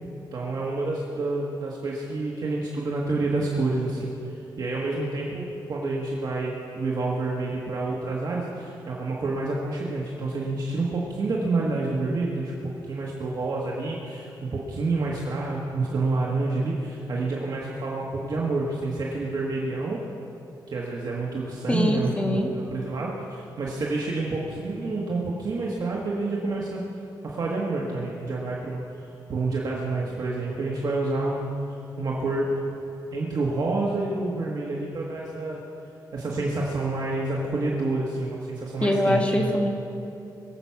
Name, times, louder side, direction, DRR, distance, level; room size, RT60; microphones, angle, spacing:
voice 1, 0.3-20.0 20.7-22.4 22.7-26.8 27.2-32.6 33.1-35.6 36.1-39.5, right 3 dB, 55° right, -3 dB, 1.6 m, -28 dB
voice 2, 21.7-22.5 38.8-39.7, left 1 dB, 15° left, 1 dB, 1.6 m, -23 dB
21.5 x 8.0 x 5.9 m, 2.7 s
wide cardioid pair, 125°, 8 cm